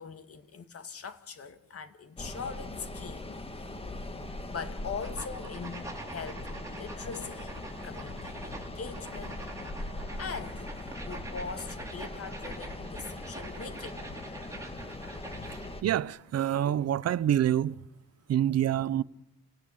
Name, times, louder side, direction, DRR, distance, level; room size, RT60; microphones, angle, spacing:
voice 1, 0.0-9.5 10.2-14.2 14.5-15.8, left 5 dB, 50° left, 2.1 m, -42 dB
sound 1, 2.2-15.8, left 2 dB, 20° left, 2.0 m, -40 dB
sound 2, 5.0-15.8, right 2 dB, 10° right, 5.2 m, -45 dB
voice 2, 15.8-17.8 18.3-19.0, right 11 dB, 55° right, 0.8 m, -26 dB
29.0 x 17.0 x 8.5 m
cardioid pair, 90°, 30 cm